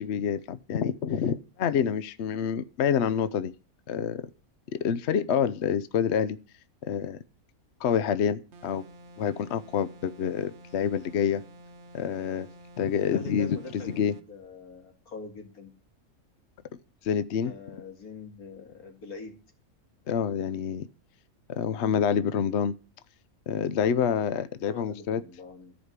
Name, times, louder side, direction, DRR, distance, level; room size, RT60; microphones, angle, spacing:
voice 1, 0.0-3.5 3.9-4.3 4.7-6.4 6.8-7.2 7.8-8.8 9.2-11.4 11.9-12.5 12.8-14.1 17.0-17.5 20.1-20.9 21.5-22.7 23.5-25.2, left 7 dB, 55° left, 14 dB, 0.9 m, -27 dB
sound 1, 8.5-14.3, equal, 55° right, 1.1 m, -50 dB
voice 2, 13.0-15.7 17.4-19.4 24.6-25.8, left 4 dB, 85° left, 4 dB, 2.7 m, -44 dB
14.0 x 5.2 x 8.0 m, 0.34 s
omnidirectional pair, 1.5 m